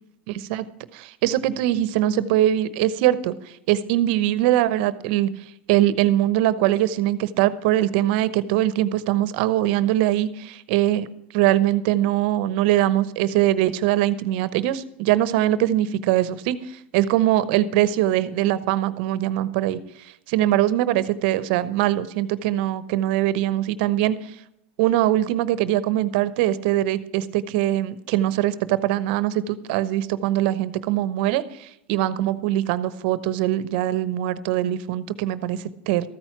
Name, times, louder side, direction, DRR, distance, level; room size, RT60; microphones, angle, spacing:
voice 1, 0.3-0.6 0.9-5.3 5.7-11.1 11.3-19.8 20.3-24.3 24.8-36.1, right 13 dB, 60° right, 16 dB, 0.9 m, -22 dB
14.0 x 9.1 x 6.0 m, 0.79 s
supercardioid pair, 120°, 6 cm